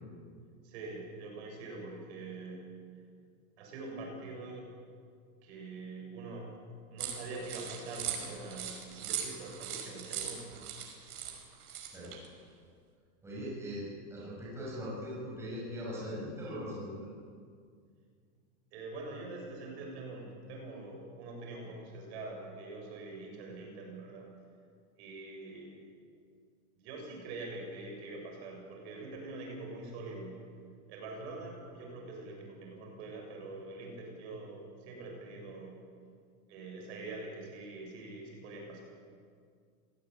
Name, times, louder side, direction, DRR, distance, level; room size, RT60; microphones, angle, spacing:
voice 1, 0.6-2.6 3.6-4.7 5.4-6.6 6.9-10.5 18.7-24.3 25.0-25.8 26.7-30.4 30.9-35.8 36.5-38.8, right 2 dB, 45° right, 0 dB, 7.2 m, -44 dB
sound 1, 7.0-12.3, right 9 dB, 85° right, 5.7 m, -40 dB
voice 2, 13.2-13.8 14.1-17.1, equal, 5° right, -7 dB, 6.6 m, -40 dB
26.0 x 18.0 x 9.0 m, 2.1 s
supercardioid pair, 180°, 44 cm